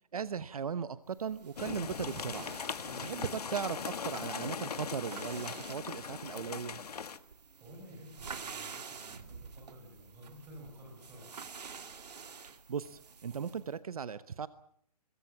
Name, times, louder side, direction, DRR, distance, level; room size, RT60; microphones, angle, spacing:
voice 1, 0.1-2.5 3.0-6.8 12.4-14.5, right 7 dB, 60° right, 13 dB, 1.0 m, -38 dB
sound 1, 1.1-13.7, right 5 dB, 80° right, 2.3 m, -49 dB
sound 2, 1.6-7.2, left 6 dB, 70° left, 1.5 m, -40 dB
voice 2, 2.8-3.2 7.6-11.3, equal, 10° right, 0 dB, 6.7 m, -52 dB
22.5 x 22.5 x 7.2 m, 0.65 s
hypercardioid pair, 175°, 21 cm